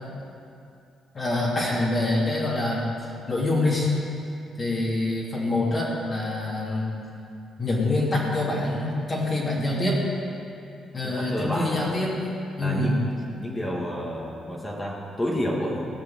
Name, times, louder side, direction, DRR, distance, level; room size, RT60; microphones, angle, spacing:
voice 1, 1.1-2.9 3.3-3.9 4.6-6.9 7.6-10.0 10.9-12.1 12.6-13.0, left 2 dB, 35° left, -5 dB, 3.0 m, -25 dB
voice 2, 11.0-12.0 12.6-13.1 13.4-15.9, equal, 15° left, -2 dB, 2.2 m, -30 dB
17.5 x 6.4 x 7.9 m, 2.6 s
cardioid pair, 90°, 0 cm